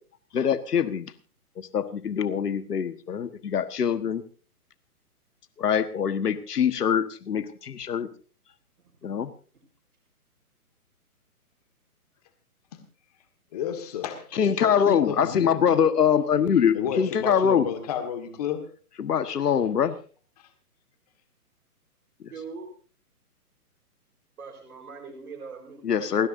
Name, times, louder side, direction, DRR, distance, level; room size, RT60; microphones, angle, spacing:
voice 1, 0.3-1.1 1.6-4.2 5.6-8.1 9.0-9.3 14.3-17.6 19.0-19.9 25.8-26.3, left 8 dB, 85° left, 12 dB, 1.5 m, -24 dB
voice 2, 13.5-15.9 16.7-18.6 20.4-20.5, left 9 dB, 25° left, 7 dB, 1.8 m, -31 dB
voice 3, 22.3-22.7 24.4-26.3, right 5 dB, 65° right, 1 dB, 4.4 m, -41 dB
29.0 x 10.5 x 2.6 m, 0.39 s
hypercardioid pair, 170°, 46 cm